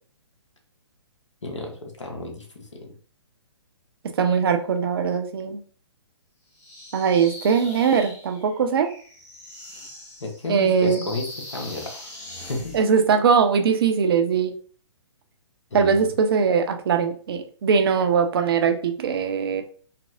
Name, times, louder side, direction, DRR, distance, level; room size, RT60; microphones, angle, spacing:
voice 1, 1.4-2.9 10.2-11.2 11.5-12.1 12.5-12.7 15.7-16.1, left 3 dB, 80° left, 1 dB, 1.0 m, -32 dB
voice 2, 4.2-5.6 6.9-8.9 10.5-11.0 12.7-14.5 15.7-19.6, right 6 dB, 50° right, 6 dB, 0.6 m, -21 dB
sound 1, 6.5-12.9, left 1 dB, 15° left, 0.8 m, -41 dB
4.1 x 2.0 x 2.4 m, 0.43 s
figure-of-eight pair, 125°, 15 cm